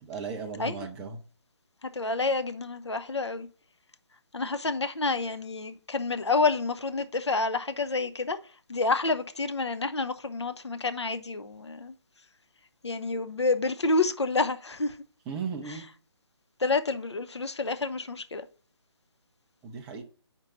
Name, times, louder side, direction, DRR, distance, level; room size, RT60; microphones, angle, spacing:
voice 1, 0.0-1.2 15.3-15.9 19.6-20.0, right 5 dB, 5° right, 0.4 m, -36 dB
voice 2, 1.8-3.5 4.3-8.4 8.7-11.9 12.8-15.0 15.7-15.8 16.6-18.5, left 3 dB, 75° left, 0.7 m, -28 dB
5.2 x 4.4 x 5.7 m
figure-of-eight pair, 145°, 15 cm